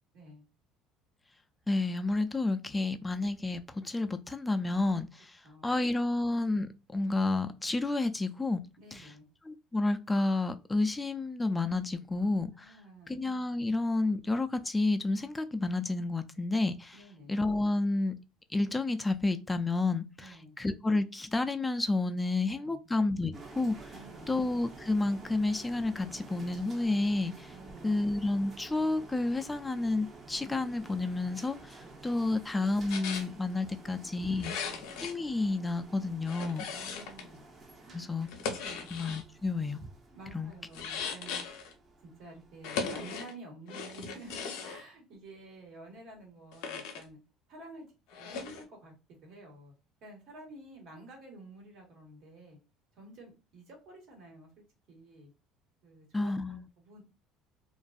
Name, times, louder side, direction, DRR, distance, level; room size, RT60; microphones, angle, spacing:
voice 1, 0.1-0.5 5.4-5.8 8.8-9.3 12.6-13.2 16.9-17.3 20.2-20.5 22.5-22.8 23.9-24.4 27.5-28.0 31.8-32.4 33.6-34.1 34.6-34.8 36.6-37.5 37.8-38.1 38.6-38.9 40.1-41.6 42.0-47.2 47.5-47.8 48.1-48.9 49.2-49.7 50.0-52.6 52.9-54.5 54.9-55.3 55.8-57.0, right 2 dB, 65° right, 1.4 m, -51 dB
voice 2, 1.7-8.6 8.9-9.1 9.5-12.7 13.1-17.0 17.3-18.2 18.5-23.9 24.3-27.5 27.8-34.5 35.0-36.7 37.9-38.3 38.9-39.9 40.3-40.5 56.1-56.6, left 2 dB, 10° left, 0.3 m, -30 dB
sound 1, 23.3-43.0, right 2 dB, 30° right, 0.7 m, -51 dB
sound 2, 32.9-33.3 34.4-35.1 36.2-37.3 38.2-39.2 40.7-41.7 42.6-43.3 43.7-44.8 46.5-47.0 48.1-48.6, left 5 dB, 75° left, 0.5 m, -38 dB
2.5 x 2.4 x 2.3 m
supercardioid pair, 100°, 0 cm